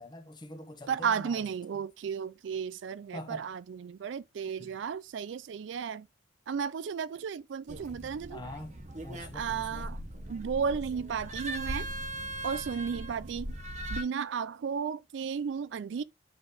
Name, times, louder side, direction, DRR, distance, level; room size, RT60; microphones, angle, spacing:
voice 1, 0.0-1.4 3.1-3.4 4.6-4.7 8.3-8.8 9.0-9.9, left 1 dB, 25° left, 0.9 m, -44 dB
voice 2, 0.9-6.1 6.5-8.4 9.3-10.0 10.3-11.9 12.4-13.5 13.9-16.0, right 6 dB, 75° right, 0.4 m, -34 dB
sound 1, 7.7-14.0, right 1 dB, 40° right, 1.0 m, -39 dB
8.7 x 3.4 x 3.5 m
head